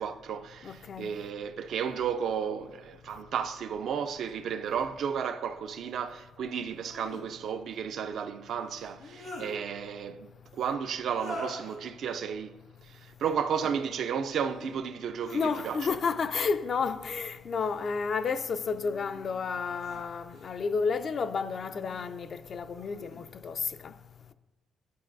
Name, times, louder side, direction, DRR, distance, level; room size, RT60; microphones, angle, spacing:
voice 1, 0.0-12.6 12.9-15.9, right 7 dB, 70° right, 0.3 m, -33 dB
voice 2, 0.6-1.1 15.3-23.9, left 5 dB, 50° left, 0.3 m, -31 dB
sound 1, 4.3-4.4 6.6-7.3 8.8-9.5 11.0-11.8 13.2-13.7 14.2-14.7 15.1-16.0 17.3-17.9 18.5-20.5 21.6-22.1 22.7-23.2, left 1 dB, 75° left, 1.7 m, -45 dB
10.5 x 3.9 x 2.5 m
cardioid pair, 90°, 0 cm